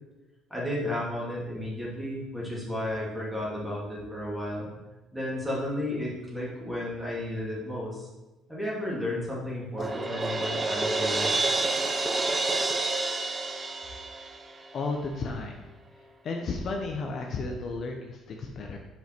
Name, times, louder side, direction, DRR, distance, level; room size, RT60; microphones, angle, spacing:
voice 1, 0.5-4.7 5.1-8.1 8.5-11.4, left 1 dB, 5° right, -6 dB, 2.4 m, -33 dB
Crash cymbal, 9.8-14.7, right 2 dB, 25° right, 0.6 m, -28 dB
voice 2, 14.7-15.6 16.2-18.8, left 3 dB, 45° left, 2 dB, 0.7 m, -33 dB
5.3 x 5.2 x 4.5 m, 1.1 s
cardioid pair, 120°, 0 cm